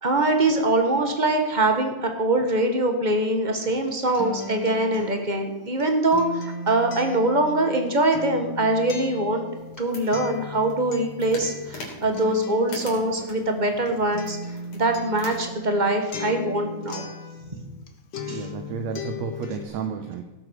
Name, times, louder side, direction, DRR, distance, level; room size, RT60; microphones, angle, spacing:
voice 1, 0.0-9.5 9.8-17.0 17.5-17.6 18.3-18.5, right 2 dB, 25° right, 5 dB, 0.9 m, -23 dB
Acoustic guitar, 3.7-17.9 18.1-19.7, left 3 dB, 50° left, 1.5 m, -37 dB
sound 1, 9.6-15.5, left 2 dB, 80° left, 4.9 m, -44 dB
voice 2, 18.3-20.2, right 6 dB, 70° right, 6 dB, 2.1 m, -32 dB
17.0 x 7.8 x 6.5 m, 1.1 s
omnidirectional pair, 3.5 m